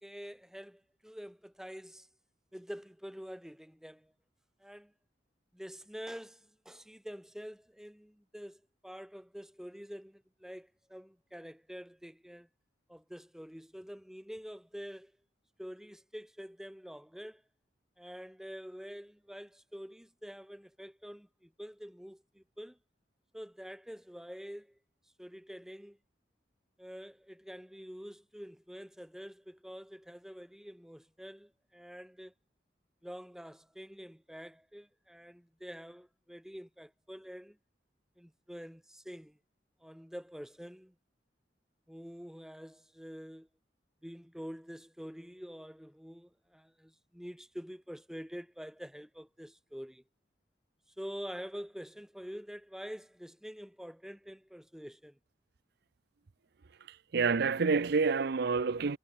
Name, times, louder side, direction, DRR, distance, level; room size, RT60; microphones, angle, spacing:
voice 1, 0.0-2.1 2.5-4.1 4.6-4.9 5.5-12.5 12.9-15.1 15.6-17.4 18.0-22.8 23.3-24.8 25.2-26.0 26.8-32.3 33.0-37.6 38.2-39.4 39.8-40.9 41.9-43.5 44.0-50.0 51.0-55.2, equal, 5° right, 2.5 m, -47 dB
voice 2, 56.9-59.0, right 4 dB, 60° right, 0.6 m, -28 dB
head